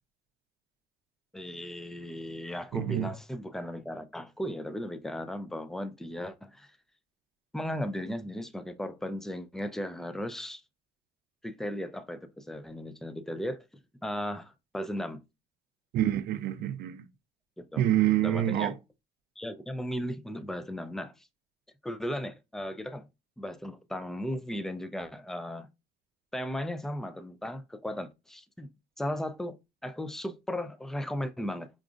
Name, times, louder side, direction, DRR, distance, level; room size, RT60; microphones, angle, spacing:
voice 1, 1.3-6.7 7.5-10.6 11.4-13.7 14.0-15.2 17.6-17.9 18.2-18.7 19.4-21.3 21.8-23.1 23.4-25.7 26.3-28.7 29.0-31.7, equal, 5° left, 0.3 m, -36 dB
voice 2, 2.7-3.1 15.9-17.1 17.8-18.7, right 12 dB, 65° right, 0.5 m, -27 dB
4.8 x 2.4 x 2.4 m
cardioid pair, 110°, 17 cm